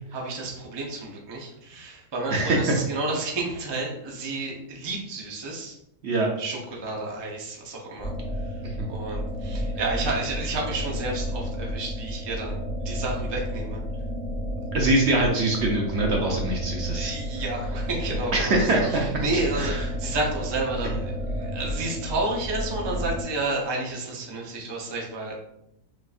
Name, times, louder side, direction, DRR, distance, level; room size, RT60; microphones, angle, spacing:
voice 1, 0.1-5.8 6.4-13.8 16.9-25.4, right 2 dB, 25° right, -1 dB, 0.6 m, -31 dB
sound 1, 8.0-23.2, equal, 40° left, 1.5 m, -31 dB
voice 2, 14.7-17.1 18.3-18.9 19.3-19.8, right 2 dB, 60° right, 0 dB, 0.9 m, -24 dB
6.1 x 2.6 x 2.4 m, 0.81 s
omnidirectional pair, 1.4 m